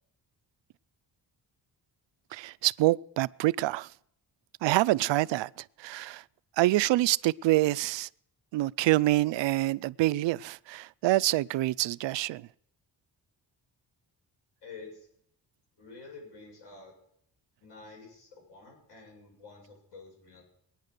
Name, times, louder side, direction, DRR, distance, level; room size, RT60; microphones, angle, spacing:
voice 1, 2.3-3.9 4.6-5.5 5.8-6.2 6.6-8.1 8.5-12.5, right 17 dB, 85° right, 0.5 m, -26 dB
voice 2, 14.6-15.1 15.8-16.9 17.6-20.4, left 4 dB, 70° left, 7.2 m, -49 dB
22.0 x 9.6 x 6.7 m
wide cardioid pair, 145°, 43 cm